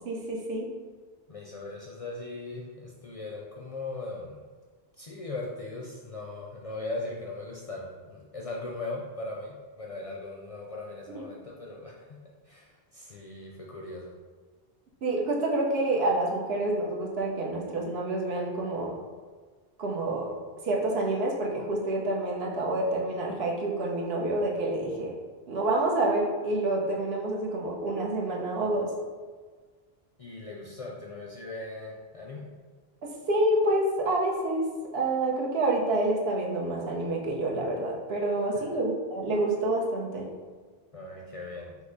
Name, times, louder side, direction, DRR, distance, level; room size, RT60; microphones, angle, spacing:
voice 1, 0.0-0.7 11.1-11.2 15.0-19.0 19.8-20.4 20.6-25.1 25.5-28.9 33.0-34.7 34.9-40.3, right 2 dB, 75° right, -1 dB, 1.0 m, -28 dB
voice 2, 1.3-4.4 5.0-14.2 30.2-32.5 38.5-38.8 40.9-41.8, left 2 dB, 50° left, -2 dB, 0.4 m, -39 dB
5.5 x 2.0 x 3.9 m, 1.4 s
omnidirectional pair, 1.0 m